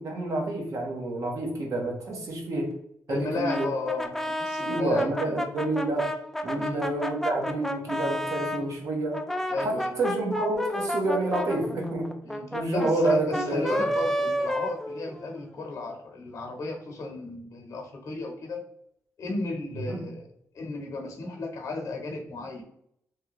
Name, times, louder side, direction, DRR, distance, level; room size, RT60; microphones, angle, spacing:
voice 1, 0.0-2.7 3.1-3.7 4.7-6.1 6.4-9.2 9.6-12.2 12.5-13.9 19.9-20.0, right 2 dB, 60° right, 1 dB, 0.9 m, -28 dB
voice 2, 3.1-5.4 6.6-6.8 9.5-10.0 12.2-18.7 19.2-20.3 20.5-22.6, left 2 dB, 60° left, 2 dB, 0.9 m, -34 dB
Brass instrument, 3.5-8.6 9.1-15.4, equal, 5° left, 0.3 m, -31 dB
3.2 x 2.3 x 2.9 m, 0.73 s
cardioid pair, 110°, 6 cm